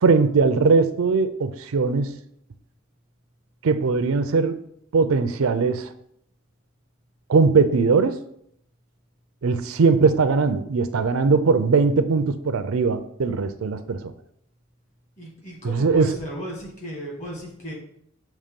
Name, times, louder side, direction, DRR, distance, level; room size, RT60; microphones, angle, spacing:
voice 1, 0.0-2.2 3.6-4.6 4.9-5.9 7.3-8.2 9.4-14.0 15.6-16.2, right 4 dB, 70° right, 11 dB, 0.5 m, -20 dB
voice 2, 15.2-17.7, equal, 35° left, -2 dB, 2.1 m, -35 dB
6.6 x 3.1 x 5.2 m, 0.70 s
head